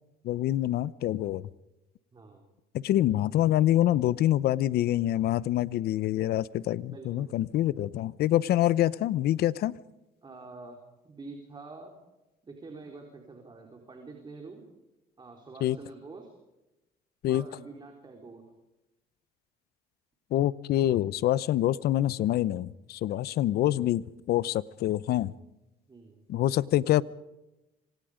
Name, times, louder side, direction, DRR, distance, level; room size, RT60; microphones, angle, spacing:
voice 1, 0.2-1.5 2.8-9.7 15.6-15.8 17.2-17.4 20.3-25.3 26.3-27.0, left 13 dB, 70° left, 0.8 m, -26 dB
voice 2, 2.1-2.4 6.9-7.4 10.2-10.8 11.0-11.9 12.4-14.6 15.2-16.3 17.3-18.4 25.9-26.2, right 3 dB, 25° right, 4.1 m, -46 dB
26.5 x 25.0 x 5.1 m
cardioid pair, 110°, 17 cm